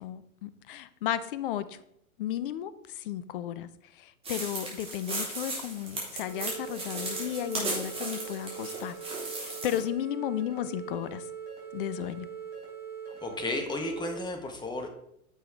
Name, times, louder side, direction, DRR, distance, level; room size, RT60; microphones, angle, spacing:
voice 1, 0.0-1.8 2.2-8.9 9.3-11.2 11.7-12.3, left 11 dB, 40° left, 14 dB, 0.6 m, -34 dB
sound 1, 4.2-9.8, right 2 dB, 15° right, 3.3 m, -36 dB
sound 2, 6.3-14.2, right 7 dB, 35° right, 3.9 m, -42 dB
voice 2, 13.1-14.9, left 2 dB, 10° left, 5 dB, 1.1 m, -33 dB
9.8 x 6.8 x 3.3 m, 0.75 s
figure-of-eight pair, 100°, 42 cm